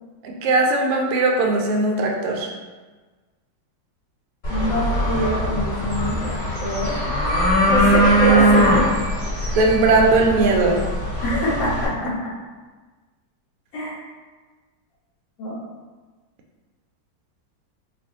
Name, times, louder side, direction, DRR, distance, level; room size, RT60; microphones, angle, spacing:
voice 1, 0.2-2.5 9.6-10.8, right 3 dB, 80° right, 1 dB, 0.7 m, -19 dB
sound 1, 4.4-11.9, right 1 dB, 45° left, 1.5 m, -21 dB
voice 2, 4.5-7.0 7.7-8.8 9.4-9.6 11.2-12.1 13.7-13.9 15.4-15.6, equal, 80° left, -4 dB, 1.6 m, -24 dB
4.6 x 2.4 x 2.6 m, 1.3 s
omnidirectional pair, 2.1 m